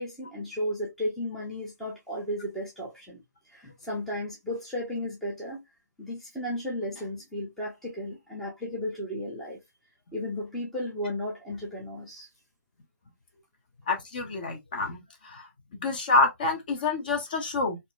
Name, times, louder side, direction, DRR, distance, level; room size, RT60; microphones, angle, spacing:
voice 1, 0.0-3.2 3.5-5.6 6.0-9.6 10.1-12.3, left 1 dB, ahead, 0.6 m, -34 dB
voice 2, 13.9-15.0 15.2-15.4 15.8-17.8, left 3 dB, 30° left, 0.8 m, -27 dB
3.9 x 2.6 x 2.2 m
figure-of-eight pair, 150°, 9 cm